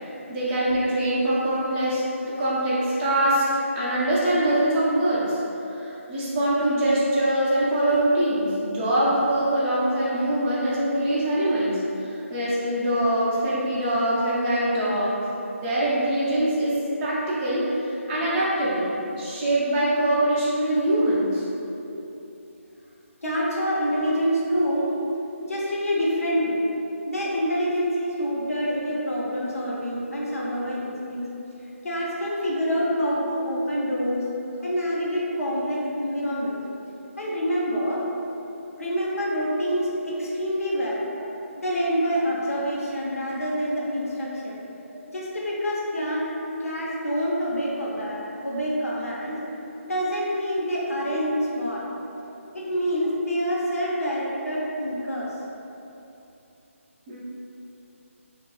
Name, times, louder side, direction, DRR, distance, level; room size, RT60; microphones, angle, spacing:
voice 1, 0.3-5.4 5.7-15.2 15.6-21.4 24.0-24.1 44.9-45.0 51.1-51.2 57.1-57.2, right 1 dB, 10° right, -10 dB, 0.4 m, -23 dB
voice 2, 23.2-24.9 25.4-26.7 27.1-31.3 31.8-34.3 34.6-36.6 37.2-38.0 38.8-41.0 41.6-44.6 45.1-46.3 46.6-49.4 49.8-51.8 52.5-55.3, equal, 90° left, -5 dB, 0.9 m, -26 dB
5.2 x 2.3 x 2.3 m, 2.9 s
hypercardioid pair, 170°, 8 cm